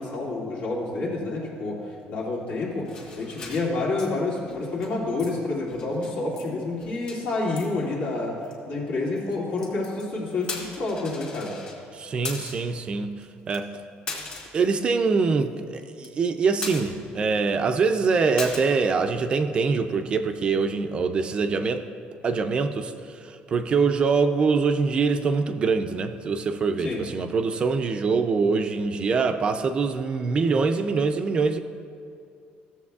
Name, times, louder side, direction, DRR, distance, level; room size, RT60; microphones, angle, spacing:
voice 1, 0.0-1.8 2.1-8.4 8.7-11.6 26.8-27.0, left 2 dB, 80° left, -5 dB, 2.3 m, -28 dB
sound 1, 2.8-4.1 4.4-4.9 5.2-5.3 5.6-6.5 6.7-7.2 7.6-7.7 8.4-8.5 9.2-10.0 10.4-11.8 12.2-12.7 13.2-13.3 13.5-13.6 14.1-14.6 15.0-15.1 15.4-15.5 15.8-16.3 16.6-17.2 17.5-17.6 18.4-18.6, left 3 dB, 35° left, 1.7 m, -38 dB
voice 2, 11.9-13.1 13.5-13.7 14.5-21.9 22.2-22.9 23.2-31.6, right 4 dB, 30° right, 8 dB, 0.4 m, -24 dB
15.0 x 7.2 x 2.4 m, 2.4 s
cardioid pair, 165°, 3 cm